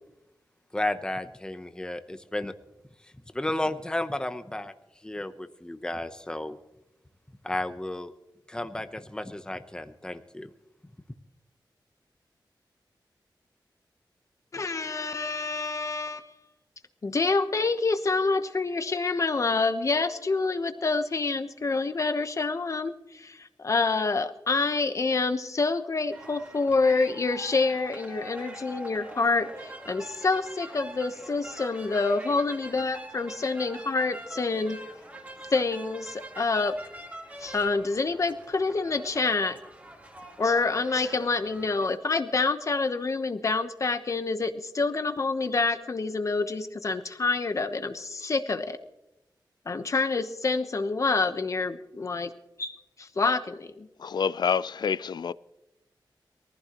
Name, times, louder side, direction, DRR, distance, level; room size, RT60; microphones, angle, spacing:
voice 1, 0.7-2.5 3.3-4.7 5.0-6.6 7.4-8.1 8.5-10.5, left 1 dB, 10° left, 0.8 m, -33 dB
voice 2, 14.5-16.3 17.0-34.8 35.5-36.8 37.4-39.6 40.4-48.8 49.7-52.3 52.6-53.9, left 3 dB, 40° left, 1.0 m, -27 dB
sound 1, 26.1-42.0, right 1 dB, 20° right, 2.0 m, -44 dB
voice 3, 54.0-55.3, left 6 dB, 65° left, 0.4 m, -27 dB
22.5 x 15.0 x 3.0 m
wide cardioid pair, 155°, 8 cm